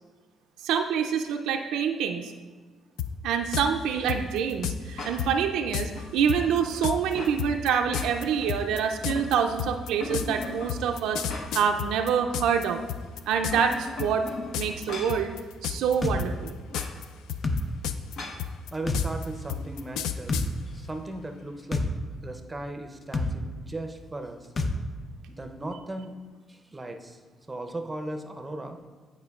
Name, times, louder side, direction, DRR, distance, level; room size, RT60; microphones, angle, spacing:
voice 1, 0.6-2.3 3.2-11.2 11.5-12.8 13.3-14.2 14.5-15.3 15.6-16.6, right 7 dB, 90° right, 4 dB, 0.3 m, -26 dB
sound 1, 3.0-3.1 3.5-3.7 4.1-4.8 5.2-5.3 5.7-5.9 6.3-12.6 12.9-13.7 14.0-14.3 14.5-14.8 15.1-15.9 16.2-17.0 17.3-20.5, left 9 dB, 90° left, 0.3 m, -31 dB
sound 2, 5.0-5.4 5.9-7.4 7.8-8.5 8.8-9.6 10.0-11.8 12.1-12.2 13.3-15.2 16.7-17.0 18.2-18.5, left 2 dB, 70° left, 0.9 m, -39 dB
sound 3, 16.0-16.2 17.4-17.6 18.9-19.1 20.3-20.5 21.7-21.9 23.1-23.3 24.6-24.8, left 3 dB, 40° left, 0.6 m, -26 dB
voice 2, 18.7-20.3 20.7-21.8 22.2-24.5 25.3-26.2 26.5-27.2 27.5-28.8, right 2 dB, 15° right, 5 dB, 0.6 m, -37 dB
11.0 x 4.3 x 2.3 m, 1.4 s
cardioid pair, 90°, 0 cm